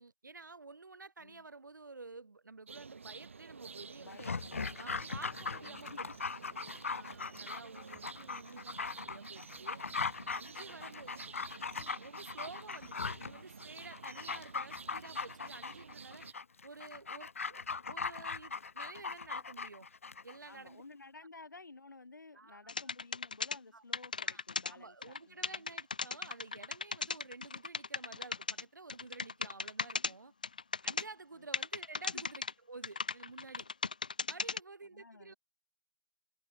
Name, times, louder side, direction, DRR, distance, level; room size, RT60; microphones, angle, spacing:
voice 1, 0.0-4.3 4.8-5.9 6.9-9.8 10.3-11.3 11.7-16.3 16.6-19.9 20.2-20.8 22.3-22.7 23.7-23.8 24.3-24.4 24.7-30.3 30.8-33.7 34.3-35.3, right 3 dB, 80° right, 4.4 m, -51 dB
sound 1, 2.7-16.3, right 5 dB, 40° right, 7.5 m, -51 dB
voice 2, 4.0-6.0 10.7-11.0 20.5-25.7 31.3-31.5 32.1-32.2 34.9-35.4, left 3 dB, 80° left, 6.0 m, -55 dB
Dog, 4.1-20.4 20.7-20.8, left 5 dB, 45° left, 1.5 m, -40 dB
sound 2, 22.7-23.6 23.9-24.7 25.0-25.2 25.4-28.6 28.9-30.1 30.4-31.0 31.5-32.5 32.8-34.6, left 5 dB, 25° left, 0.4 m, -36 dB
hypercardioid pair, 175°, 10 cm